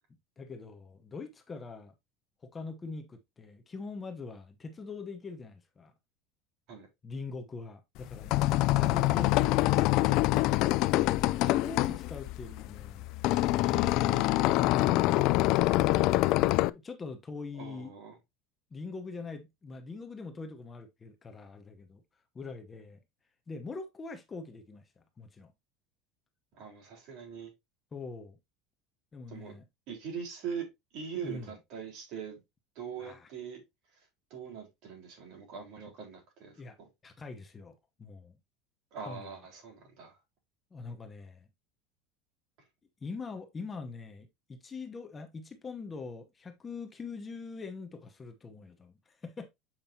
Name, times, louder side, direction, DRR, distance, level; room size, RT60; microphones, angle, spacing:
voice 1, 0.4-1.9 2.5-5.9 7.0-10.3 11.4-13.1 13.6-14.6 16.7-17.9 18.7-22.0 22.3-23.0 23.5-25.5 27.9-28.4 29.1-29.6 31.2-31.5 33.0-33.3 36.6-36.8 37.0-38.4 39.0-39.5 40.7-41.5 43.0-49.5, left 4 dB, 20° left, 0.9 m, -43 dB
sound 1, 8.0-16.7, left 17 dB, 55° left, 0.3 m, -25 dB
voice 2, 17.5-18.2 26.6-27.5 29.3-29.6 29.9-30.7 30.9-32.4 32.8-33.6 34.3-36.9 38.9-40.2, right 7 dB, 55° right, 4.0 m, -42 dB
7.4 x 5.0 x 2.8 m
supercardioid pair, 145°, 0 cm